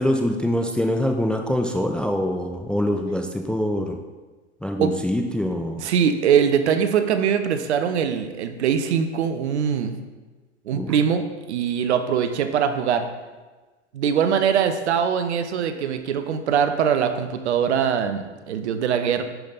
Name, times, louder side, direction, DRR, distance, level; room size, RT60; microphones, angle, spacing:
voice 1, 0.0-4.0 4.6-5.9 10.7-10.9, left 1 dB, 5° left, 4 dB, 0.5 m, -24 dB
voice 2, 5.8-10.0 10.7-13.1 13.9-19.2, right 7 dB, 70° right, 9 dB, 0.9 m, -22 dB
10.5 x 5.2 x 4.0 m, 1.3 s
hypercardioid pair, 95°, 35 cm